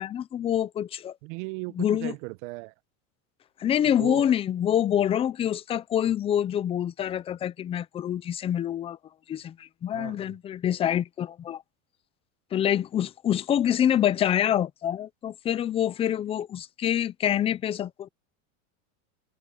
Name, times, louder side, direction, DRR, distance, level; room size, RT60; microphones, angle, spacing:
voice 1, 0.0-1.1 1.8-2.1 3.6-9.0 9.3-11.6 12.5-18.1, left 10 dB, 15° left, 0.4 m, -26 dB
voice 2, 1.2-2.7 3.8-4.3 9.9-10.3, right 25 dB, 60° right, 0.9 m, -37 dB
supercardioid pair, 150°, 41 cm